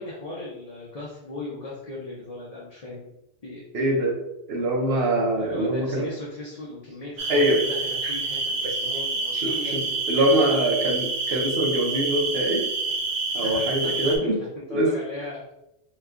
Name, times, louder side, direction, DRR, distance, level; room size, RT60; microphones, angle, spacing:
voice 1, 0.0-3.1 3.4-3.6 5.4-10.6 13.4-15.4, left 2 dB, 40° left, -5 dB, 0.6 m, -38 dB
voice 2, 3.7-4.1 4.5-6.1 7.3-7.6 8.0-8.1 8.6-8.7 9.3-9.8 10.1-12.6 13.3-14.4 14.7-14.9, right 1 dB, 65° right, 0 dB, 0.9 m, -23 dB
sound 1, 7.2-14.2, right 3 dB, 90° right, 1.0 m, -28 dB
2.9 x 2.2 x 3.6 m, 0.88 s
omnidirectional pair, 1.1 m